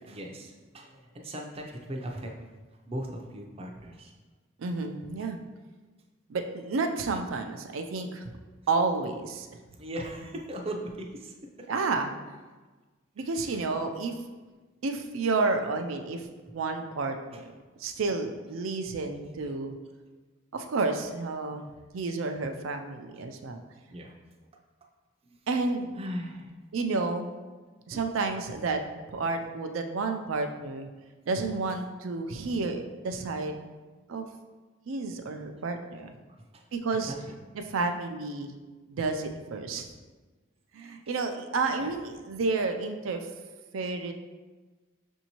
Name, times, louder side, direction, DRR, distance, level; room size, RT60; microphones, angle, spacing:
voice 1, 0.1-2.4 2.9-4.1 9.8-11.7 13.5-13.6 17.3-17.4 21.5-21.6 23.9-24.1 25.2-25.4 26.0-26.5 27.9-28.0 32.3-32.4 36.5-36.6 37.1-37.3 40.8-40.9 41.8-41.9, right 1 dB, 30° right, 1 dB, 0.5 m, -39 dB
voice 2, 4.6-5.4 6.3-8.3 8.7-9.5 11.7-12.1 13.2-14.1 14.8-16.3 16.5-17.5 17.8-19.8 20.5-21.7 21.9-23.6 25.5-25.9 26.7-27.3 27.9-28.8 29.1-30.9 31.3-33.6 34.1-34.3 34.9-36.1 36.7-37.1 37.5-38.6 38.9-39.9 40.7-43.3 43.7-44.1, right 3 dB, 85° right, 5 dB, 0.4 m, -30 dB
6.1 x 2.7 x 2.9 m, 1.3 s
head